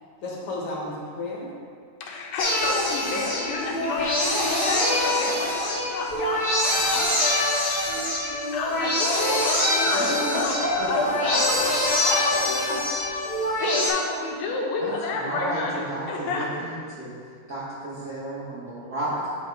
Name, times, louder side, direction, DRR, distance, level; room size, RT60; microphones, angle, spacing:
voice 1, 0.2-1.5 10.0-12.5, left 1 dB, 60° left, -4 dB, 1.6 m, -31 dB
voice 2, 2.0-7.4 8.5-10.6 10.9-11.0 11.6-12.2 13.6-16.5, left 3 dB, 90° left, -1 dB, 2.7 m, -31 dB
sound 1, 2.4-13.9, left 1 dB, 40° left, 1.4 m, -24 dB
voice 3, 9.8-10.4 10.8-11.5 14.8-17.1 17.5-19.3, right 1 dB, 85° right, -9 dB, 0.8 m, -33 dB
10.5 x 3.7 x 4.7 m, 2.2 s
omnidirectional pair, 4.0 m